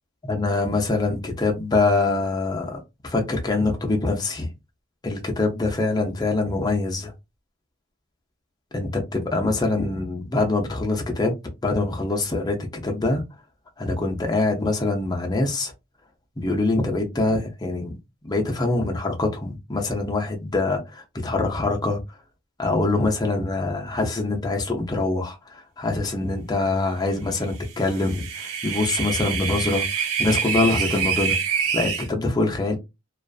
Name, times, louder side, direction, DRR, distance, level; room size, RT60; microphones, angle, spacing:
voice 1, 0.2-4.5 5.0-7.1 8.7-12.6 12.8-13.2 13.8-15.7 16.4-17.9 18.2-22.0 22.6-29.8 30.2-31.4 31.7-32.8, left 2 dB, 20° left, 0.5 m, -24 dB
sound 1, 27.8-32.1, right 7 dB, 85° right, 0.5 m, -26 dB
2.4 x 2.3 x 2.3 m
head